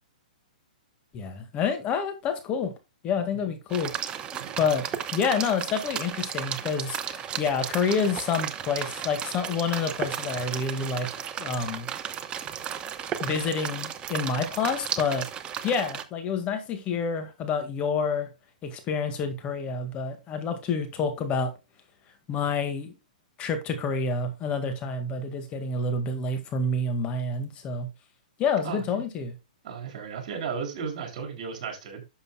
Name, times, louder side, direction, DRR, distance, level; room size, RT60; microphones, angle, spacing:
voice 1, 1.1-2.7 3.0-3.9 4.2-4.3 4.6-4.8 5.1-11.1 11.4-11.9 13.2-15.3 15.6-18.3 18.6-21.5 22.3-23.0 23.4-27.9 28.4-29.3, left 5 dB, 25° left, 1.8 m, -28 dB
sound 1, 3.7-16.0, right 9 dB, 20° right, 0.9 m, -34 dB
voice 2, 28.6-29.0 29.6-32.0, right 6 dB, 55° right, 3.8 m, -35 dB
11.0 x 6.9 x 2.3 m
hypercardioid pair, 130°, 4 cm